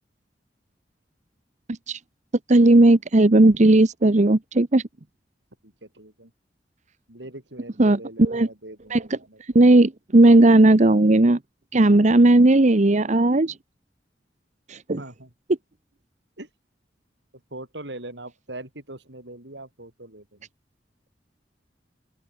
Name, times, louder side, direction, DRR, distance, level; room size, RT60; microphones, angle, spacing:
voice 1, 2.5-4.8 7.8-8.5 8.9-9.0 9.5-11.4 11.7-13.5 14.7-15.0, right 2 dB, 45° right, 0.9 m, -16 dB
voice 2, 5.6-6.3 7.1-9.6 14.9-15.3 16.4-16.5 17.5-20.5, right 1 dB, 80° right, 7.2 m, -41 dB
open air
head